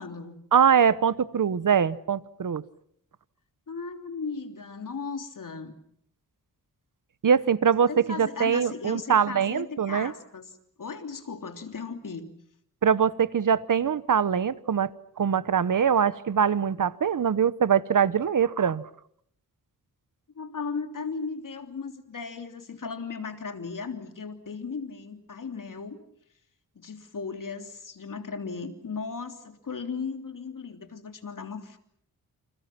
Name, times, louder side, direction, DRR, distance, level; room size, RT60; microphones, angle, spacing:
voice 1, 0.0-0.4 3.7-5.8 7.9-10.5 10.8-12.3 20.3-26.0 26.7-31.8, left 5 dB, 60° left, 6 dB, 3.4 m, -36 dB
voice 2, 0.5-2.6 7.2-10.1 12.8-14.9 15.2-18.8, right 7 dB, 60° right, 16 dB, 1.0 m, -23 dB
29.0 x 28.0 x 5.9 m, 0.68 s
wide cardioid pair, 100°, 36 cm